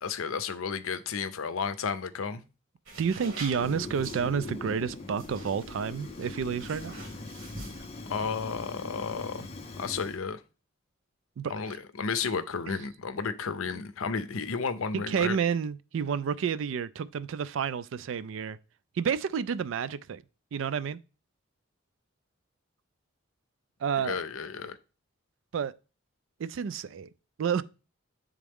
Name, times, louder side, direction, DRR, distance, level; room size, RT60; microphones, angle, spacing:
voice 1, 0.0-2.4 8.1-9.5 9.8-10.4 11.5-15.4 24.0-24.8, left 5 dB, 90° left, 0.6 m, -32 dB
sound 1, 2.9-7.8, right 2 dB, 85° right, 1.8 m, -46 dB
voice 2, 3.0-6.9 11.4-11.5 14.9-18.6 19.0-20.2 20.5-21.0 23.8-24.2 25.5-25.7 26.4-27.1 27.4-27.6, right 7 dB, 70° right, 0.3 m, -30 dB
Fire, 3.5-10.2, left 2 dB, 30° left, 0.6 m, -41 dB
8.5 x 3.6 x 3.5 m
head